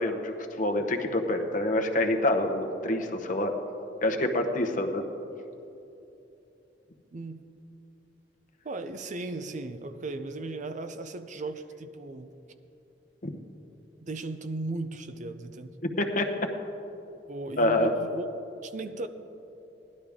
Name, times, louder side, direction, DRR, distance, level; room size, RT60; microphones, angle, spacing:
voice 1, 0.0-3.6 4.0-5.1 13.2-13.3 16.0-16.5 17.6-17.9, left 1 dB, 45° left, 5 dB, 0.9 m, -27 dB
voice 2, 7.1-7.4 8.6-12.3 14.0-15.7 17.3-18.2 18.6-19.1, right 2 dB, 45° right, 10 dB, 0.5 m, -36 dB
17.0 x 11.5 x 3.6 m, 2.9 s
head